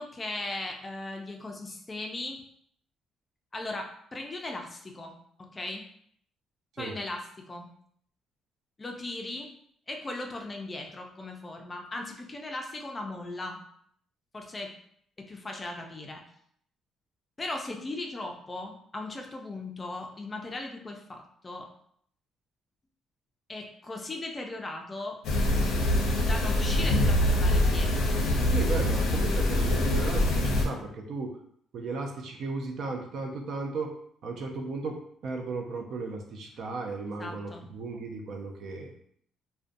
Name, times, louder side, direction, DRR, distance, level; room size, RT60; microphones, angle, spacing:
voice 1, 0.0-2.4 3.5-5.1 5.5-5.8 6.8-7.7 8.8-9.5 9.9-13.6 14.3-14.7 15.2-16.2 17.4-21.7 23.5-25.2 26.3-28.1 37.2-37.6, left 2 dB, 20° left, 2 dB, 0.4 m, -38 dB
sound 1, 25.2-30.7, left 1 dB, 85° left, 0.5 m, -24 dB
voice 2, 28.5-31.4 31.7-34.0 34.2-38.9, right 3 dB, 60° right, 2 dB, 0.4 m, -35 dB
2.5 x 2.1 x 2.5 m, 0.65 s
cardioid pair, 130°, 0 cm